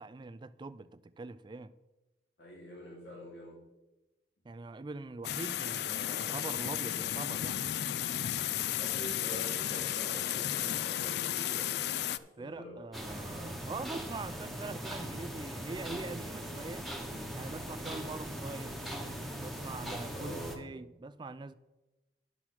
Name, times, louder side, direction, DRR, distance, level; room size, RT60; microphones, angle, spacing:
voice 1, 0.0-1.7 4.4-7.6 12.4-16.9 17.3-18.8 19.4-21.5, right 3 dB, 25° right, 0.3 m, -43 dB
voice 2, 2.4-3.6 8.8-12.7 20.1-20.6, equal, 80° left, 2.7 m, -46 dB
sound 1, 5.2-12.2, left 11 dB, 65° left, 0.4 m, -33 dB
sound 2, 12.9-20.6, equal, ahead, 1.1 m, -40 dB
9.9 x 6.0 x 6.0 m
head